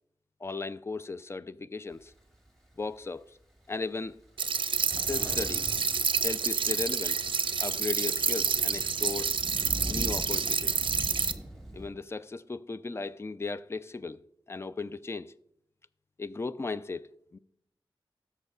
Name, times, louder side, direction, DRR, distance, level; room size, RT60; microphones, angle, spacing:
voice 1, 0.4-2.1 2.8-3.2 3.7-4.2 5.0-5.6 6.2-7.2 7.6-9.3 9.9-10.8 11.7-14.2 14.5-15.3 16.2-17.4, left 3 dB, 30° left, 0.3 m, -36 dB
Thunder, 1.9-3.2 3.7-3.8 4.1-11.9, right 1 dB, 5° left, 2.2 m, -42 dB
sound 1, 4.4-11.3, right 5 dB, 65° right, 0.5 m, -28 dB
13.5 x 6.6 x 2.4 m
wide cardioid pair, 95°, 9 cm